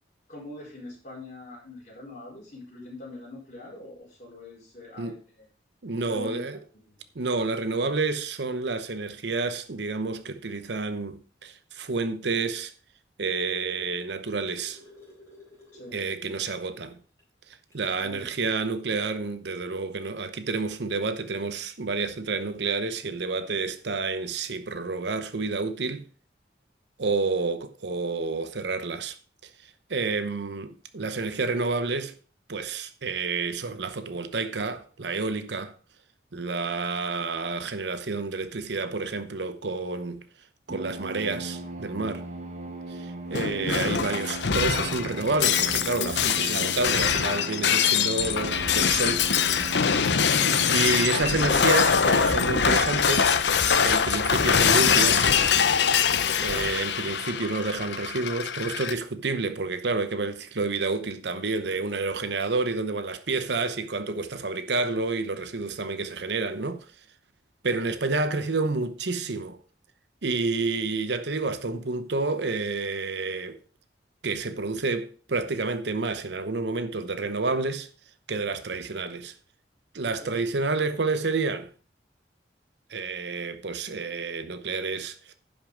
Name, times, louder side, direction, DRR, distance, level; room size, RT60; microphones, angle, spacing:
voice 1, 0.3-5.5 6.0-6.6 6.9-7.0 15.7-16.0 18.0-18.2 67.7-67.9 80.2-80.4, left 1 dB, 40° left, 4.5 m, -43 dB
voice 2, 5.8-6.6 7.1-12.7 13.2-14.8 15.9-17.0 17.7-26.0 27.0-29.2 29.9-32.1 32.5-35.7 36.3-40.3 40.7-42.3 42.9-49.2 49.6-50.2 50.7-53.4 53.8-55.4 56.4-66.9 67.6-69.6 70.2-73.6 74.2-77.9 78.3-79.3 79.9-81.7 82.9-85.1, right 3 dB, 70° right, 0.8 m, -29 dB
sound 1, 14.1-16.8 17.2-17.3 17.7-17.9 19.0-19.1, left 2 dB, 15° left, 3.8 m, -52 dB
sound 2, 40.7-52.5, right 2 dB, 40° right, 1.3 m, -38 dB
Shatter, 43.3-58.9, left 7 dB, 70° left, 0.7 m, -23 dB
10.5 x 5.5 x 5.1 m
head